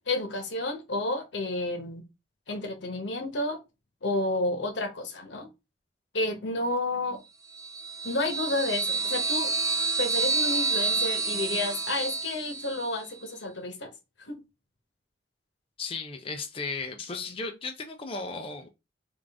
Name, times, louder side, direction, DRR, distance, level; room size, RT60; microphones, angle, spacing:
voice 1, 0.1-2.0 2.5-3.6 4.0-5.5 6.1-7.2 8.0-9.5 10.0-13.9 14.3-14.4, left 2 dB, 85° left, 1.0 m, -30 dB
sound 1, 7.5-13.0, right 4 dB, 20° right, 0.5 m, -29 dB
voice 2, 15.8-18.7, left 4 dB, 30° left, 0.5 m, -35 dB
3.7 x 2.5 x 3.4 m
head